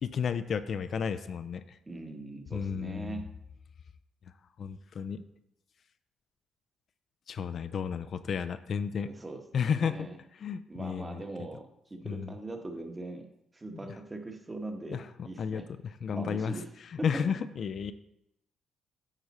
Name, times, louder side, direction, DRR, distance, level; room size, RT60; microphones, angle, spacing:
voice 1, 0.0-1.8 2.5-3.2 4.6-5.3 7.3-9.1 9.5-10.1 10.3-11.2 12.0-12.3 13.7-13.8 14.9-16.6 16.9-17.9, left 7 dB, 55° left, 11 dB, 0.4 m, -33 dB
voice 2, 1.9-3.2 9.1-10.2 10.7-13.3 13.5-15.0 15.2-15.6 16.1-16.7 17.0-17.1, right 2 dB, 20° right, 4 dB, 1.2 m, -41 dB
9.0 x 4.9 x 4.2 m, 0.81 s
cardioid pair, 90°, 0 cm